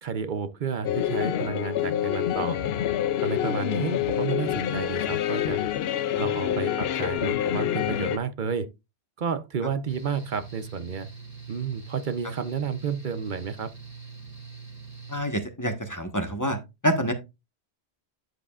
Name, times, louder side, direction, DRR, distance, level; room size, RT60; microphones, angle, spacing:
voice 1, 0.0-2.6 3.2-5.6 6.2-8.7 9.2-11.1 11.5-13.7, right 6 dB, 50° right, 0.7 m, -31 dB
sound 1, 0.8-8.2, left 11 dB, 70° left, 0.8 m, -27 dB
Mechanical fan, 9.9-15.2, right 5 dB, 15° right, 2.3 m, -43 dB
voice 2, 15.1-16.6 16.8-17.1, equal, 15° left, 1.2 m, -27 dB
9.3 x 7.6 x 2.4 m
omnidirectional pair, 1.1 m